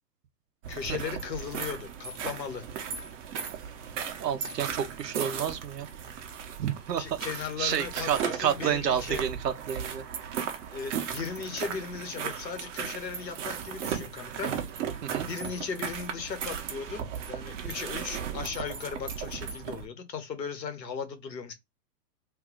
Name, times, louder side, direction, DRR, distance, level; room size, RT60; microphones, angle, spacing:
sound 1, 0.6-19.8, right 7 dB, 50° right, 0.9 m, -36 dB
voice 1, 0.7-2.7 7.0-9.2 10.7-14.5 15.2-21.5, left 6 dB, 85° left, 1.0 m, -37 dB
voice 2, 4.2-5.9 6.6-7.0 7.6-10.0 15.0-15.3, right 9 dB, 75° right, 0.8 m, -30 dB
2.7 x 2.4 x 3.7 m
hypercardioid pair, 120°, 49 cm